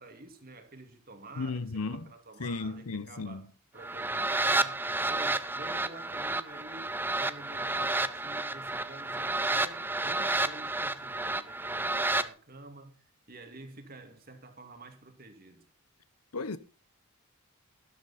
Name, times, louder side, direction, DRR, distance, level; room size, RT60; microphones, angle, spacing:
voice 1, 0.0-3.5 3.7-15.6, right 2 dB, 40° right, 2.3 m, -49 dB
voice 2, 1.4-2.1 2.4-3.5 16.3-16.6, left 3 dB, 80° left, 0.9 m, -35 dB
sound 1, 3.8-12.3, right 2 dB, 10° right, 0.5 m, -31 dB
13.0 x 11.5 x 4.2 m
head